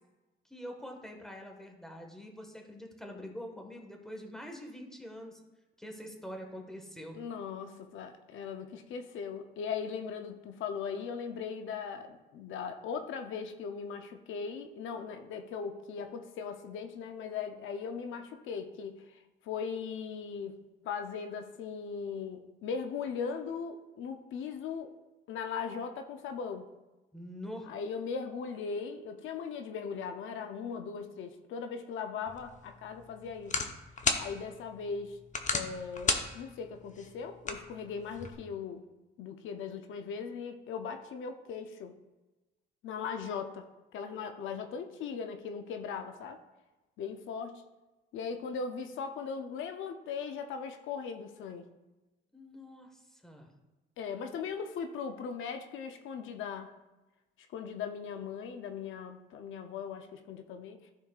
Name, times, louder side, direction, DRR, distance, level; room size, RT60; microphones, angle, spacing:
voice 1, 0.4-5.4 5.8-7.2 27.1-27.7 52.3-53.5, equal, ahead, 2 dB, 1.4 m, -45 dB
voice 2, 7.1-20.6 20.8-24.9 25.3-26.7 27.7-33.6 34.2-35.2 35.5-38.8 39.2-42.0 42.8-46.4 47.0-47.6 48.1-51.6 54.0-56.7 57.5-60.9, left 6 dB, 80° left, 7 dB, 0.6 m, -39 dB
sound 1, 32.3-38.3, left 4 dB, 40° left, 0.9 m, -36 dB
13.5 x 4.6 x 2.4 m, 1.1 s
cardioid pair, 90°, 20 cm